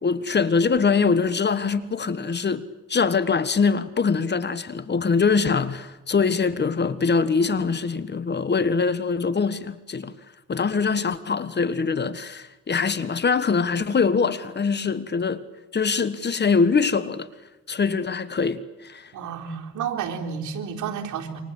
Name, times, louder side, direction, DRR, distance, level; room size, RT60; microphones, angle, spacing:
voice 1, 0.0-2.6 2.9-10.1 10.5-15.4 15.7-17.3 17.7-19.1, left 5 dB, 35° left, 1.5 m, -23 dB
voice 2, 19.1-21.4, right 7 dB, 75° right, 3.9 m, -31 dB
28.0 x 25.0 x 8.1 m
cardioid pair, 90°, 30 cm